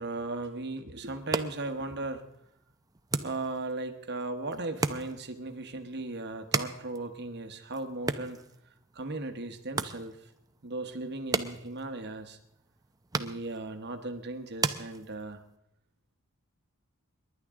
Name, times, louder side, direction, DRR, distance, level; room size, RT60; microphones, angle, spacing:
voice 1, 0.0-2.2 3.2-8.4 8.9-10.3 10.6-12.4 13.1-15.4, right 2 dB, 50° right, 7 dB, 1.1 m, -37 dB
sound 1, 1.1-15.6, right 3 dB, 15° right, 0.6 m, -38 dB
28.0 x 11.5 x 3.6 m, 0.82 s
head